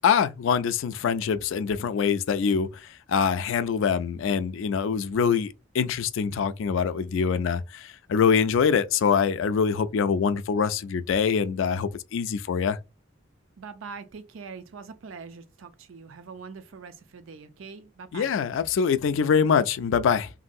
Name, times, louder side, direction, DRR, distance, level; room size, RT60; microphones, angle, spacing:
voice 1, 0.0-12.8 18.1-20.3, left 6 dB, 70° left, 0.3 m, -24 dB
voice 2, 13.6-18.4, right 5 dB, 75° right, 0.4 m, -43 dB
3.1 x 2.6 x 2.6 m
head